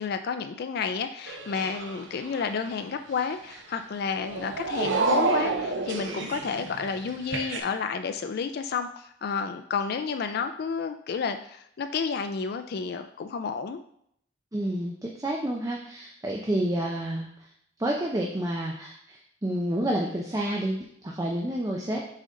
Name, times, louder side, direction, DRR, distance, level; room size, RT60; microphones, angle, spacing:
voice 1, 0.0-13.8, left 5 dB, 55° left, 8 dB, 0.3 m, -31 dB
sound 1, 1.3-7.6, right 3 dB, 85° right, 0.8 m, -41 dB
sound 2, 4.1-7.1, right 3 dB, 60° right, 0.5 m, -28 dB
voice 2, 14.5-17.3 17.8-22.0, right 1 dB, 20° right, -1 dB, 0.6 m, -29 dB
6.4 x 3.9 x 3.8 m, 0.70 s
head